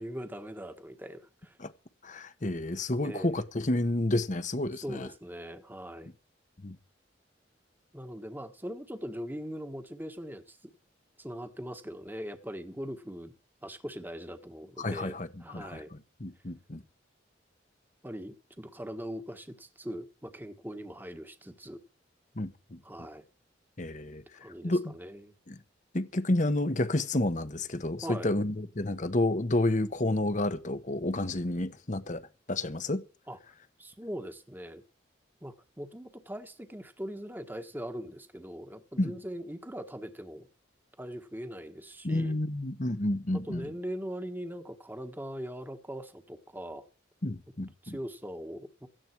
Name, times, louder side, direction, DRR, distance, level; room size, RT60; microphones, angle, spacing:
voice 1, 0.0-1.6 3.0-3.4 4.8-6.1 7.9-10.6 11.2-13.3 13.6-15.9 18.0-21.8 22.8-23.2 24.4-25.3 28.0-28.3 33.3-33.4 33.8-34.8 35.4-40.5 41.0-42.4 43.3-46.9 47.8-48.9, equal, 10° right, 1.4 m, -41 dB
voice 2, 2.0-5.1 6.6-6.8 14.8-16.8 22.4-22.8 23.8-24.2 24.6-24.9 25.5-25.6 25.9-32.2 32.5-33.0 39.0-39.2 42.0-43.7 47.2-48.0, left 1 dB, 40° left, 1.1 m, -30 dB
17.0 x 14.0 x 4.6 m
head